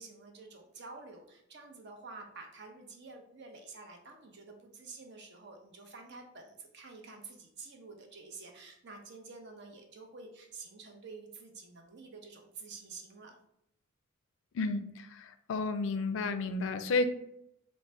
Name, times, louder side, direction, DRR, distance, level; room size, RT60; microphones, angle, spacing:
voice 1, 0.0-13.4, right 4 dB, 55° right, 3 dB, 0.7 m, -49 dB
voice 2, 14.5-17.0, left 3 dB, 60° left, 10 dB, 0.4 m, -32 dB
3.8 x 2.2 x 4.3 m, 0.78 s
head